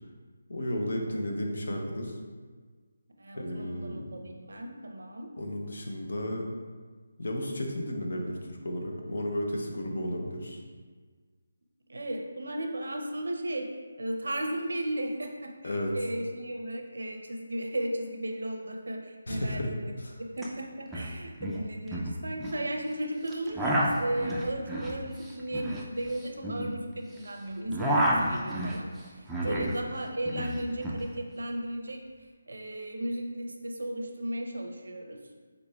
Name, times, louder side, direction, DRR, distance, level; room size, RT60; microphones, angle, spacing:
voice 1, 0.5-2.2 3.3-4.0 5.4-6.5 7.2-10.6 15.6-15.9 19.3-19.7 20.0-20.2 29.5-29.7, left 1 dB, 70° left, 1 dB, 0.8 m, -33 dB
voice 2, 3.2-5.3 11.9-13.7 14.0-32.0 32.5-35.2, right 1 dB, 85° right, 3 dB, 0.7 m, -35 dB
sound 1, 20.4-20.5 20.7-21.1 21.4-22.6 23.3-27.2 27.5-29.8 30.0-31.0, right 1 dB, 5° right, 0.4 m, -30 dB
5.0 x 3.9 x 2.3 m, 1.5 s
figure-of-eight pair, 165°, 0 cm